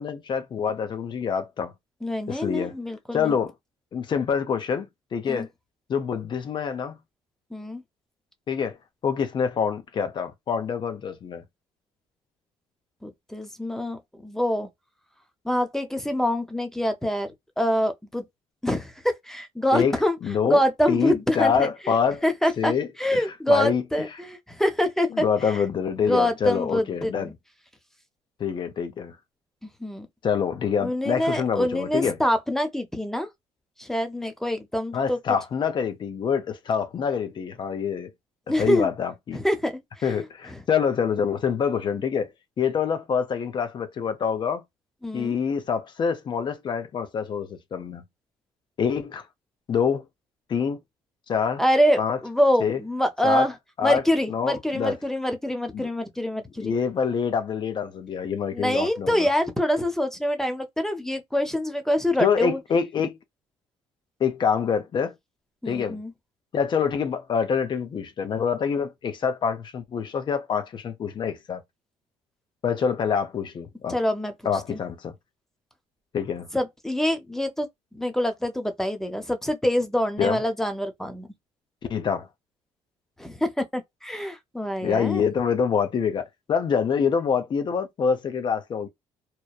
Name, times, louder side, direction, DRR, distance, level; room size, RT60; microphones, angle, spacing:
voice 1, 0.0-1.7 2.3-2.7 3.1-3.5 3.9-5.5 5.9-7.0 8.5-8.8 9.0-11.4 19.7-19.9 20.2-20.6 20.9-22.2 22.6-23.8 25.1-27.3 28.4-29.2 30.2-32.2 34.9-38.1 38.6-39.4 40.0-42.3 42.6-44.6 45.1-48.0 48.8-49.2 49.7-50.1 50.5-50.8 51.3-51.6 52.0-52.2 52.6-52.8 53.2-53.5 53.8-54.0 54.3-54.9 55.7-55.9 56.6-59.3 62.2-63.2 64.2-65.1 65.7-66.0 66.5-71.6 72.6-74.0 74.4-75.1 76.1-76.5 80.2-80.4 81.9-82.3 84.8-88.9, left 6 dB, 45° left, 0.6 m, -26 dB
voice 2, 2.0-3.4 5.3-5.5 7.5-7.8 13.0-14.7 15.4-17.3 17.6-18.2 18.6-20.2 20.5-21.9 22.2-22.7 23.0-25.6 26.0-27.3 29.6-30.1 30.8-33.3 33.8-35.2 38.5-38.9 39.3-40.6 45.0-45.4 51.6-53.5 53.8-56.8 58.5-62.6 65.6-66.1 73.9-74.3 74.7-74.8 76.5-81.3 83.2-85.3, equal, 5° left, 0.6 m, -25 dB
3.0 x 2.1 x 2.2 m
cardioid pair, 105°, 11 cm